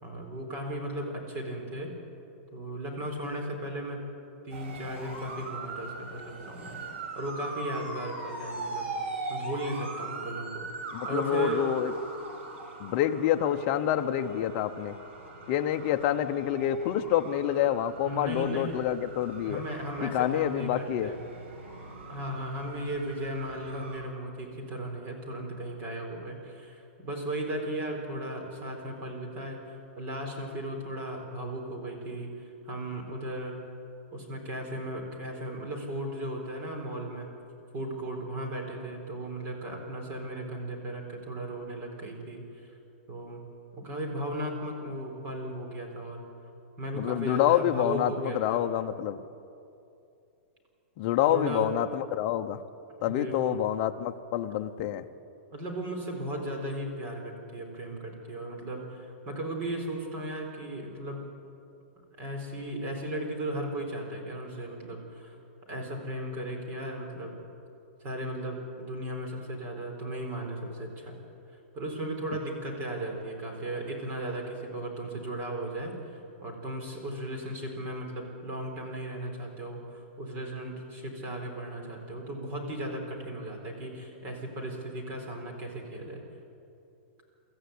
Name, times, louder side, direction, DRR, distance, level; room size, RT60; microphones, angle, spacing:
voice 1, 0.0-1.9 2.5-4.0 4.4-6.8 7.1-8.8 9.3-10.7 11.0-11.7 18.0-18.7 19.5-21.2 22.1-29.6 30.0-33.5 34.1-37.3 37.7-42.4 43.1-43.4 43.7-46.2 46.8-48.6 51.2-51.7 53.1-53.6 55.5-61.2 62.2-65.3 65.7-67.3 68.0-71.2 71.7-75.9 76.4-86.2, right 1 dB, 25° right, 2 dB, 4.2 m, -36 dB
Ambulance Passing Wail And Yelp, 4.5-24.0, right 3 dB, 70° right, 5.3 m, -41 dB
voice 2, 10.9-11.9 12.8-15.0 15.5-19.6 20.0-21.1 47.0-49.2 51.0-52.6 53.0-55.0, left 11 dB, 35° left, 7 dB, 0.9 m, -27 dB
25.0 x 14.0 x 8.6 m, 2.7 s
hypercardioid pair, 165°, 7 cm